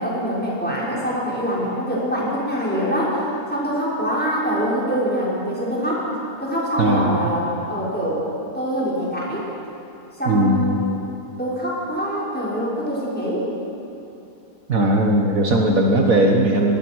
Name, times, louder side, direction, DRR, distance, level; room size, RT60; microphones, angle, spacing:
voice 1, 0.0-3.2 3.5-6.0 6.4-8.2 8.5-9.5 10.2-11.0 11.4-13.5, equal, 5° left, -6 dB, 6.3 m, -24 dB
voice 2, 6.8-7.2 10.3-10.8 14.7-16.8, right 1 dB, 60° right, 1 dB, 1.9 m, -18 dB
26.0 x 20.0 x 6.4 m, 2.8 s
omnidirectional pair, 1.7 m